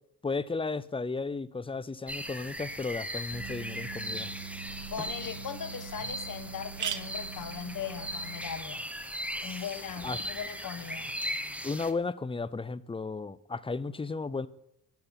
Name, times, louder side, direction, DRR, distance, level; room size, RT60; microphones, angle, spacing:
voice 1, 0.2-4.3 9.4-9.7 10.0-10.2 11.6-14.5, left 4 dB, 15° left, 0.6 m, -34 dB
sound 1, 2.1-11.9, equal, 5° right, 1.1 m, -38 dB
sound 2, 3.3-8.6, right 6 dB, 70° right, 2.3 m, -44 dB
voice 2, 4.9-8.8 9.4-11.1, left 8 dB, 60° left, 1.4 m, -39 dB
sound 3, 5.2-5.3 5.8-5.9 6.1-6.2 6.5-10.3, right 8 dB, 55° right, 1.2 m, -42 dB
13.0 x 7.8 x 8.9 m
cardioid pair, 115°, 37 cm